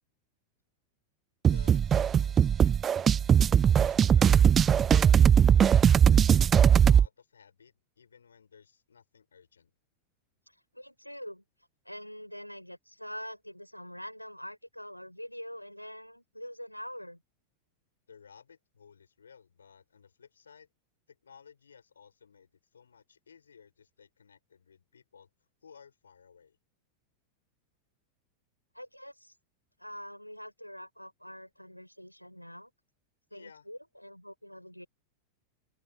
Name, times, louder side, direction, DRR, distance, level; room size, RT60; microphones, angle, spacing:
voice 1, 1.5-3.2 3.8-4.6 5.2-6.5 6.9-9.7 18.1-20.7 21.1-25.3 25.6-26.6 33.3-33.7, left 6 dB, 70° left, 7.8 m, -57 dB
sound 1, 1.5-7.1, right 8 dB, 25° right, 0.3 m, -20 dB
voice 2, 10.5-11.4 11.8-17.2 28.7-29.3 29.8-32.7 33.3-34.9, equal, 90° left, 6.4 m, -44 dB
open air
figure-of-eight pair, 90°, 0 cm